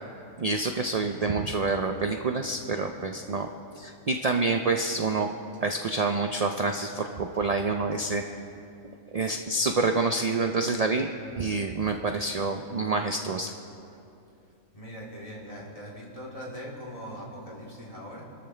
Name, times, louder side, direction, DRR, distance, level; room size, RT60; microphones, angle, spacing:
voice 1, 0.4-3.5 3.8-5.3 5.6-8.2 9.1-11.1 11.4-13.5, right 3 dB, 50° right, 4 dB, 0.4 m, -27 dB
voice 2, 14.7-18.2, equal, 25° left, -4 dB, 3.4 m, -41 dB
28.0 x 13.5 x 3.3 m, 2.7 s
omnidirectional pair, 1.4 m